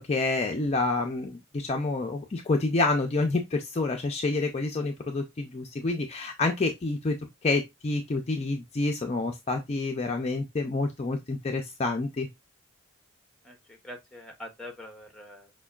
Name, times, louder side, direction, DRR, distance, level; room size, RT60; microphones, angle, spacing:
voice 1, 0.0-7.2 7.4-12.3, left 3 dB, 30° left, 0.4 m, -28 dB
voice 2, 13.4-15.5, left 1 dB, 5° left, 0.7 m, -44 dB
5.3 x 2.2 x 2.3 m
head